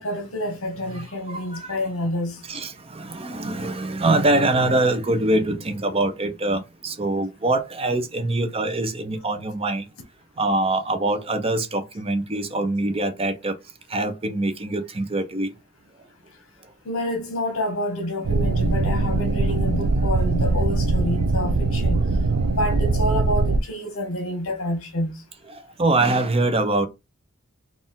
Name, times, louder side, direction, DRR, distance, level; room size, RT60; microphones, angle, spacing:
voice 1, 0.0-2.4 16.8-22.0 22.5-25.1, left 1 dB, 65° left, 1.2 m, -28 dB
voice 2, 0.9-1.8 2.5-9.8 10.4-13.6 13.9-15.5 18.8-19.0 22.0-22.1 25.5-26.9, right 2 dB, 25° right, 0.6 m, -24 dB
sound 1, 18.2-23.6, right 3 dB, 75° right, 0.4 m, -21 dB
4.2 x 2.4 x 3.6 m
head